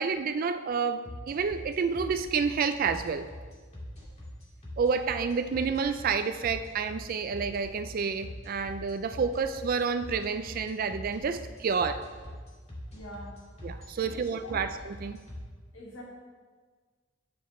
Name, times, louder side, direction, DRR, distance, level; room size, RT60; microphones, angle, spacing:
voice 1, 0.0-3.3 4.8-12.0 13.6-15.2, right 5 dB, 45° right, 10 dB, 0.4 m, -29 dB
sound 1, 1.0-15.4, left 1 dB, 35° left, 2.2 m, -43 dB
voice 2, 12.9-13.4 14.0-14.6 15.7-16.0, left 1 dB, 80° left, -2 dB, 1.9 m, -45 dB
11.0 x 7.7 x 3.1 m, 1.5 s
head